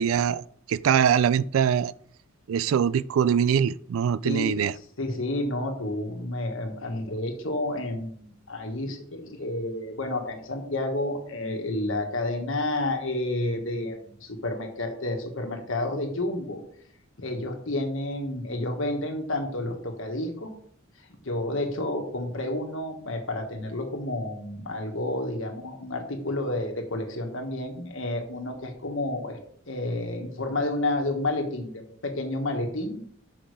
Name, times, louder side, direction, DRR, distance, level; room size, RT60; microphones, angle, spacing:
voice 1, 0.0-1.9 2.5-4.7, right 8 dB, 70° right, 0.3 m, -23 dB
voice 2, 4.2-4.6 5.0-16.6 17.2-20.5 21.1-29.4 29.7-33.0, left 1 dB, 65° left, 1.5 m, -30 dB
6.3 x 5.7 x 4.9 m
head